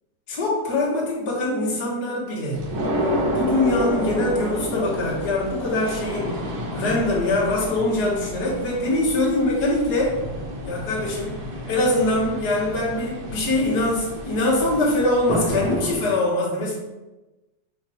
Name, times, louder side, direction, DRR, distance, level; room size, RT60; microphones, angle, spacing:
voice 1, 0.3-2.7 3.3-6.4 6.7-10.2 10.6-11.4 11.7-16.8, left 2 dB, 35° left, -5 dB, 2.0 m, -23 dB
sound 1, 2.5-15.9, equal, 70° right, 2.5 m, -30 dB
6.1 x 3.9 x 5.1 m, 1.1 s
omnidirectional pair, 3.4 m